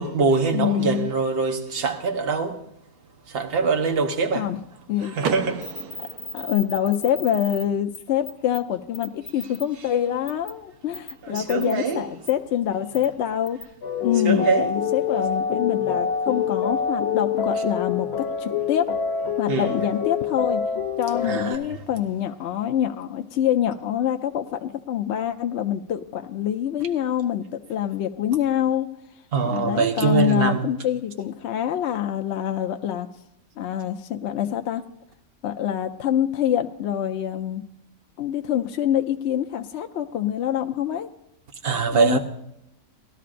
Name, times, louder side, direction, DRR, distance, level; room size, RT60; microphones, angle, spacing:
voice 1, 0.0-2.7 3.3-4.5 5.0-5.8 11.2-12.0 14.2-14.8 19.5-19.8 21.2-21.8 29.3-30.7 41.6-42.2, right 4 dB, 45° right, 1.1 m, -23 dB
voice 2, 0.5-1.1 4.3-4.6 4.9-5.2 6.3-13.6 14.0-18.9 19.4-20.6 21.0-28.9 29.4-33.1 33.6-34.8 35.4-37.6 38.2-41.1 41.9-42.2, left 10 dB, 65° left, 0.7 m, -25 dB
Car / Door, 5.2-7.1, right 6 dB, 90° right, 1.3 m, -33 dB
sound 1, 5.6-7.6 7.9-8.0 8.2-8.6 8.9-9.6 10.3-10.5 10.9-11.7 12.3-12.4 12.9-13.1 13.5-13.6, left 1 dB, 30° left, 1.6 m, -36 dB
sound 2, 13.8-21.6, left 6 dB, 85° left, 1.4 m, -26 dB
19.0 x 12.5 x 2.5 m
omnidirectional pair, 1.6 m